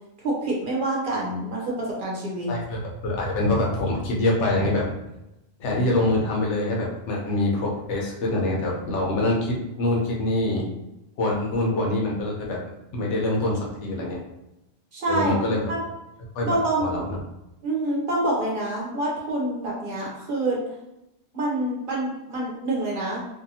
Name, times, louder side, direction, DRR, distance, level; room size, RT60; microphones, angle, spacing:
voice 1, 0.2-2.5 14.9-15.4 15.7-15.8 16.4-16.8 17.6-20.6 21.3-23.3, right 2 dB, 50° right, -4 dB, 0.9 m, -26 dB
voice 2, 2.5-4.9 5.6-10.7 11.2-12.6 12.9-14.2 15.1-15.7 16.3-17.2, left 2 dB, 85° left, -2 dB, 1.1 m, -25 dB
2.6 x 2.6 x 2.7 m, 0.91 s
omnidirectional pair, 1.1 m